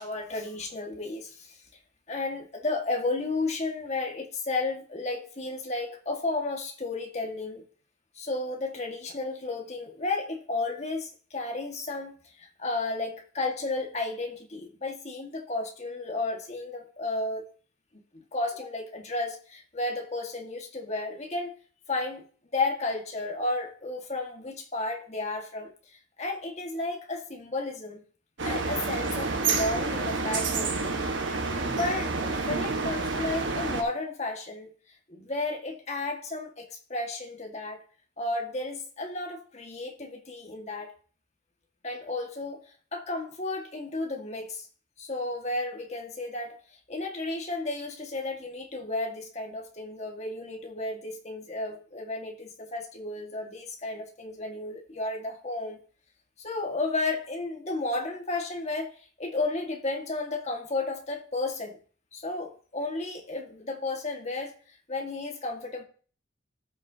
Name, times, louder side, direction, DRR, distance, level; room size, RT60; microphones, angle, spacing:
voice 1, 0.0-1.6 2.1-7.6 8.1-17.4 18.1-21.5 21.9-22.2 22.5-28.0 28.4-30.9 31.7-34.7 35.1-37.8 38.2-40.9 41.8-44.7 45.0-46.6 46.9-55.8 56.4-61.8 62.1-65.8, left 2 dB, 35° left, 1.7 m, -33 dB
sound 1, 28.4-33.8, right 3 dB, 75° right, 1.3 m, -29 dB
14.0 x 6.4 x 2.8 m
head